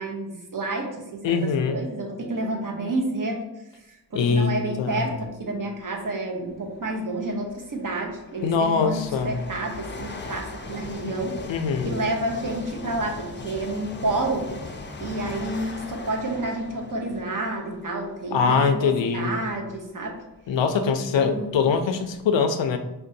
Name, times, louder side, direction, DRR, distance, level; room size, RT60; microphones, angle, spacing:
voice 1, 0.0-1.4 1.7-3.4 3.9-11.4 11.8-14.5 15.0-20.2 20.8-21.6, right 2 dB, 45° right, 0 dB, 0.8 m, -29 dB
voice 2, 1.2-1.8 4.1-5.1 8.4-9.4 11.0-11.1 11.5-11.9 18.3-19.3 20.5-22.8, left 5 dB, 85° left, 7 dB, 0.5 m, -23 dB
sound 1, 5.3-5.4 6.5-6.6 7.3-18.7 19.4-19.5 20.3-20.4 20.6-22.2, left 3 dB, 25° left, 0.4 m, -39 dB
5.1 x 2.2 x 2.7 m, 0.96 s
wide cardioid pair, 70°, 43 cm